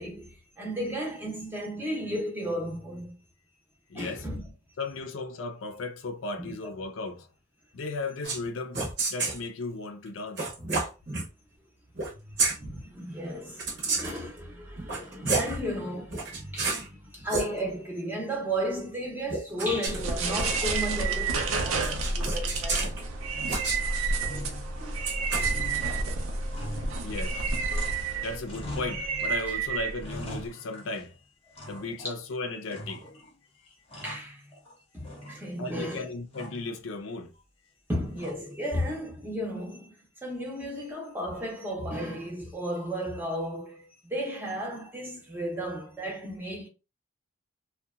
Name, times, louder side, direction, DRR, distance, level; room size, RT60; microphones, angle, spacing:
voice 1, 0.0-3.1 4.0-4.4 6.4-6.5 12.6-22.8 34.0-34.4 34.9-36.1 37.9-39.9 40.2-46.7, equal, 10° right, 0.6 m, -34 dB
voice 2, 3.9-4.3 4.8-7.3 7.7-8.8 9.1-10.5 27.0-27.4 28.2-31.1 31.6-33.0 35.6-37.3, left 3 dB, 70° left, 0.5 m, -35 dB
sound 1, 8.2-8.5 8.7-9.4 10.4-11.3 12.0-12.1 12.4-12.6 13.6-14.2 14.8-15.6 16.1-16.9 17.2-17.5 19.3-20.8 21.8-23.0 23.5-23.8 25.0-25.5, right 3 dB, 50° right, 0.8 m, -30 dB
sound 2, 19.9-30.5, right 3 dB, 80° right, 0.5 m, -30 dB
sound 3, 23.2-23.8 24.2-25.1 25.4-28.1 28.4-29.4 29.7-31.1 31.6-32.2 32.7-33.3 33.7-34.7 35.0-35.8 36.3-36.7 38.2-38.7, equal, 30° left, 0.6 m, -42 dB
2.7 x 2.2 x 2.4 m
head